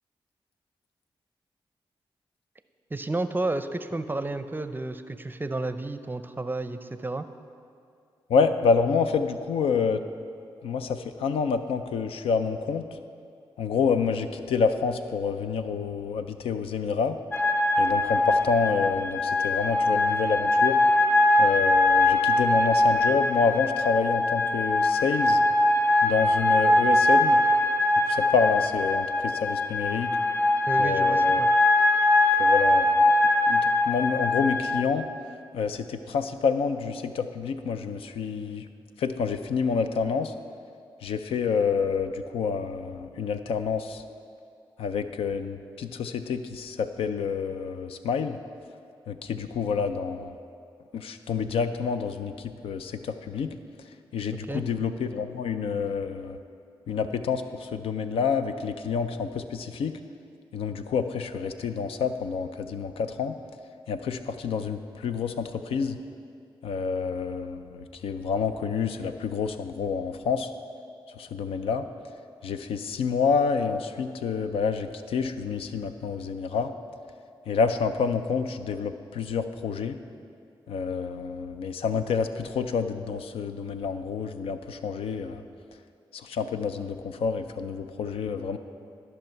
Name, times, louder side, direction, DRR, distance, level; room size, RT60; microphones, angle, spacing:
voice 1, 2.9-7.2 30.7-31.5 54.5-54.6, right 2 dB, 20° right, 10 dB, 0.5 m, -31 dB
voice 2, 8.3-10.0 10.6-12.9 13.6-17.2 17.8-20.8 21.4-25.4 26.0-27.4 28.0-30.2 30.8-31.4 32.4-33.0 33.5-35.1 35.5-38.6 39.0-40.3 41.0-44.0 44.8-48.4 49.1-50.4 50.9-53.5 54.1-56.4 56.9-59.9 60.5-63.4 63.9-66.0 66.6-70.5 71.2-71.9 72.4-76.7 77.5-80.0 80.7-85.4 86.1-88.6, left 5 dB, 90° left, 9 dB, 0.4 m, -28 dB
sound 1, 17.3-34.8, left 2 dB, 20° left, 0.7 m, -22 dB
13.5 x 5.6 x 4.5 m, 2.4 s
cardioid pair, 50°, 10 cm